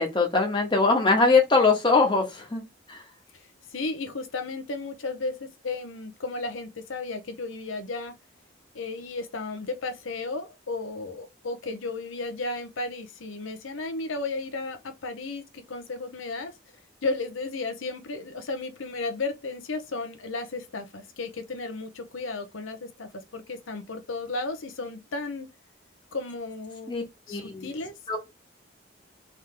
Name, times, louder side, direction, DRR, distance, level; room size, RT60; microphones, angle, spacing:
voice 1, 0.0-2.6 2.9-3.0 26.9-27.0 27.3-27.7 28.1-28.2, left 3 dB, 25° left, 1.1 m, -22 dB
voice 2, 3.3-8.1 8.7-16.5 17.0-25.5 26.1-26.9 27.3-27.9, left 3 dB, 80° left, 0.7 m, -34 dB
3.6 x 3.0 x 3.3 m
head